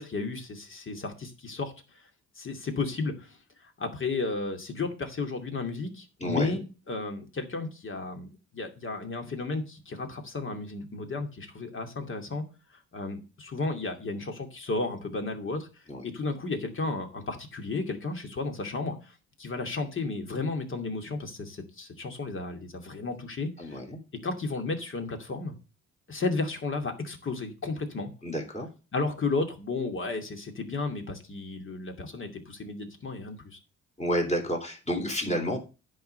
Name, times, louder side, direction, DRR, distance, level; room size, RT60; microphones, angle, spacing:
voice 1, 0.0-2.1 2.3-12.4 12.7-15.7 16.0-23.8 24.2-25.5 26.1-28.1 28.9-33.6, left 3 dB, 40° left, 5 dB, 2.5 m, -33 dB
voice 2, 6.2-6.6 15.9-16.1 23.6-24.0 28.2-28.7 34.0-35.6, equal, 20° left, 2 dB, 3.6 m, -30 dB
10.5 x 5.0 x 6.9 m, 0.32 s
cardioid pair, 90°, 30 cm